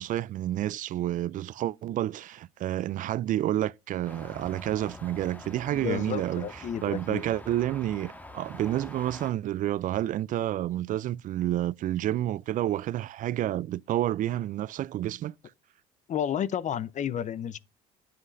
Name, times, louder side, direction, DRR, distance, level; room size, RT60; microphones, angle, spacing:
voice 1, 0.0-15.3, right 13 dB, 50° right, 0.4 m, -29 dB
sound 1, 4.0-9.3, left 1 dB, 10° left, 1.5 m, -45 dB
voice 2, 5.7-7.2 16.1-17.6, left 9 dB, 45° left, 0.7 m, -31 dB
9.5 x 7.8 x 2.6 m
supercardioid pair, 75°, 17 cm